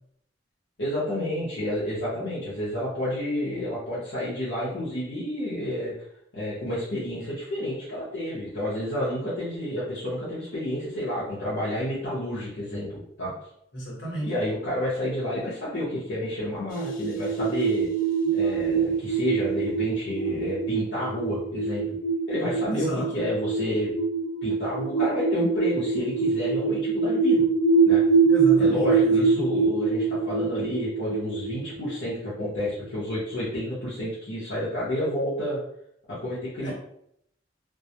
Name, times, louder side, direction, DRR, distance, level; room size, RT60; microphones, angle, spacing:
voice 1, 0.8-6.1 6.3-13.3 14.2-17.9 18.3-21.8 22.3-24.0 24.4-27.5 27.8-28.0 28.6-35.6 36.1-36.7, left 1 dB, 65° left, -9 dB, 0.7 m, -30 dB
voice 2, 13.7-14.3 18.4-18.9 22.7-23.1 28.2-29.6 36.6-36.7, right 1 dB, 80° left, -4 dB, 1.1 m, -33 dB
sound 1, 16.7-33.0, right 4 dB, 45° left, 0.3 m, -24 dB
2.2 x 2.0 x 2.7 m, 0.72 s
head